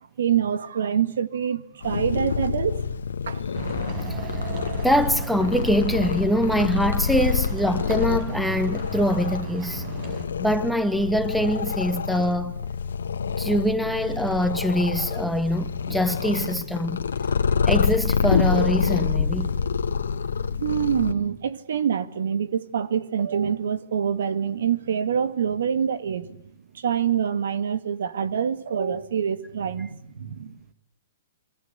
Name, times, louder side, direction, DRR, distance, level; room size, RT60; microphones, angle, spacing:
voice 1, 0.2-2.8 3.3-3.4 20.6-26.4 26.7-30.6, right 8 dB, 75° right, 2.0 m, -25 dB
Purr, 1.8-21.1, left 6 dB, 85° left, 1.6 m, -27 dB
sound 1, 3.5-10.3, right 4 dB, 40° right, 6.2 m, -36 dB
voice 2, 4.8-9.8 10.4-12.5 13.4-17.0 17.7-19.5 29.8-29.9, equal, ahead, 1.9 m, -24 dB
28.0 x 22.5 x 8.2 m
hypercardioid pair, 135°, 0 cm